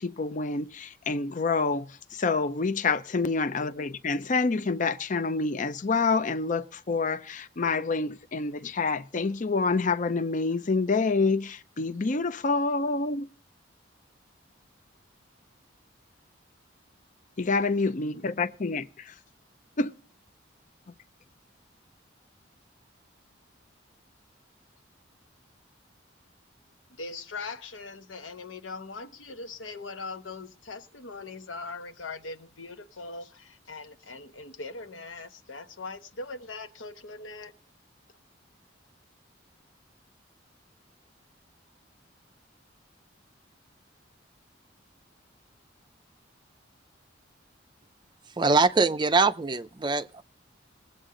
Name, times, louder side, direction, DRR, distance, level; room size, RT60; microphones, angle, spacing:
voice 1, 0.0-13.3 17.4-19.1 19.8-19.9, left 4 dB, 40° left, 0.6 m, -27 dB
voice 2, 26.9-37.5, left 3 dB, 80° left, 1.1 m, -40 dB
voice 3, 48.4-50.2, right 3 dB, 25° right, 0.5 m, -23 dB
21.0 x 8.1 x 3.8 m
head